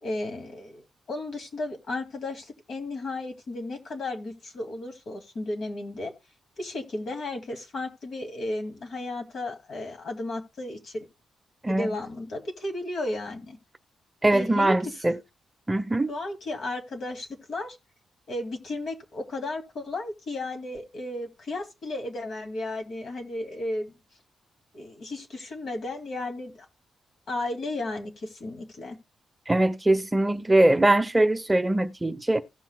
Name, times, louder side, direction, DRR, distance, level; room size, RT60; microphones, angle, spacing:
voice 1, 0.0-6.1 6.6-11.1 11.7-13.6 14.3-14.9 16.1-17.8 18.3-23.9 24.7-26.7 27.3-29.0, left 2 dB, 60° left, 2.1 m, -34 dB
voice 2, 14.2-15.2 15.7-16.1 29.5-32.4, right 1 dB, 15° right, 0.6 m, -22 dB
16.5 x 6.0 x 2.2 m
cardioid pair, 95°, 0 cm